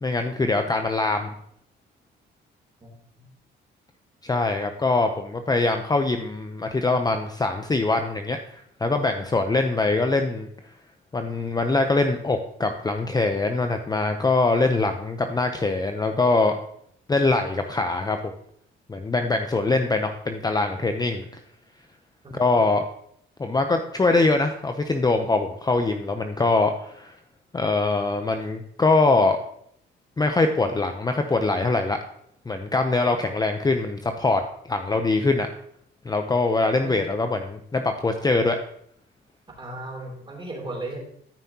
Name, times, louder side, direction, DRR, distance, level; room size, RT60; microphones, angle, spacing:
voice 1, 0.0-1.3 4.2-10.5 11.1-16.6 17.1-18.2 18.9-21.3 22.3-22.8 23.4-27.1 27.5-29.4 30.2-32.0 32.5-34.4 34.7-35.5 36.0-38.6, left 3 dB, 20° left, 6 dB, 0.6 m, -23 dB
voice 2, 2.8-3.2 22.2-22.6 36.8-37.1 39.6-41.0, right 2 dB, 25° right, -1 dB, 3.1 m, -36 dB
13.0 x 5.6 x 2.8 m, 0.69 s
cardioid pair, 90°, 20 cm